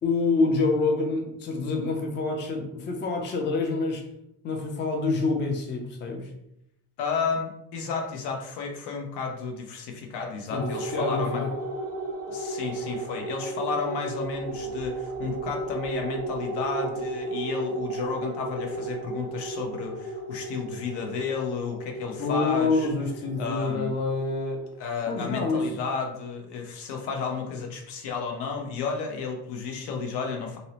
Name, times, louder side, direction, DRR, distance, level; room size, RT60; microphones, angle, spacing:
voice 1, 0.0-4.0 4.4-6.3 10.5-11.5 22.2-24.6 25.1-25.7, left 3 dB, 30° left, 2 dB, 0.4 m, -27 dB
voice 2, 7.0-11.4 12.3-22.9 23.4-23.9 24.8-30.6, left 5 dB, 70° left, 2 dB, 0.7 m, -32 dB
sound 1, 10.5-25.3, right 2 dB, 55° right, 0.5 m, -34 dB
2.6 x 2.0 x 2.8 m, 0.80 s
cardioid pair, 135°, 42 cm